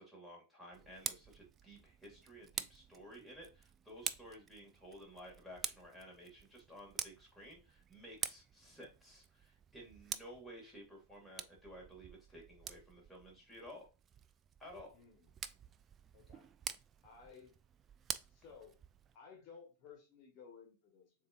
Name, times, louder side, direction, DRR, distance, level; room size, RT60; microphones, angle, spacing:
voice 1, 0.0-13.9 14.6-14.9, equal, ahead, -3 dB, 2.2 m, -54 dB
Tick, 0.7-19.2, right 8 dB, 25° right, 0.3 m, -48 dB
voice 2, 14.9-15.3 16.1-16.5 17.0-17.6 18.3-18.8 19.1-21.1, left 6 dB, 40° left, 0 dB, 1.5 m, -57 dB
6.9 x 2.8 x 2.5 m, 0.30 s
figure-of-eight pair, 90°, 0 cm